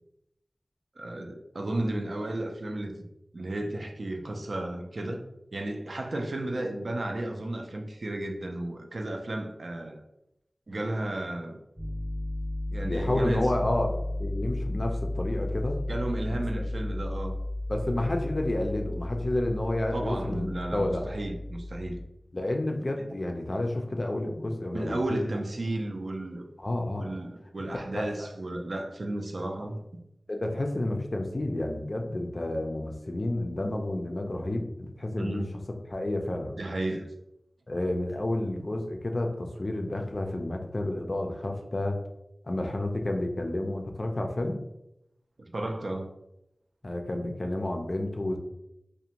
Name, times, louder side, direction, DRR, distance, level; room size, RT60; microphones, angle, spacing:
voice 1, 1.0-3.0 3.3-5.2 5.5-10.0 10.7-11.6 12.7-13.5 15.9-17.4 19.9-22.0 23.0-23.1 24.7-26.4 27.0-30.0 35.2-35.5 36.6-37.1 45.5-46.1, right 1 dB, 70° right, 2 dB, 0.4 m, -33 dB
Piano, 11.8-22.0, left 1 dB, ahead, 0.7 m, -34 dB
voice 2, 12.8-15.8 17.7-21.0 22.3-25.2 26.6-27.1 27.9-28.1 30.3-35.4 35.9-36.6 37.7-42.0 42.5-44.6 46.8-48.4, left 1 dB, 45° left, 3 dB, 0.4 m, -30 dB
2.5 x 2.1 x 2.8 m, 0.86 s
wide cardioid pair, 60°, 0 cm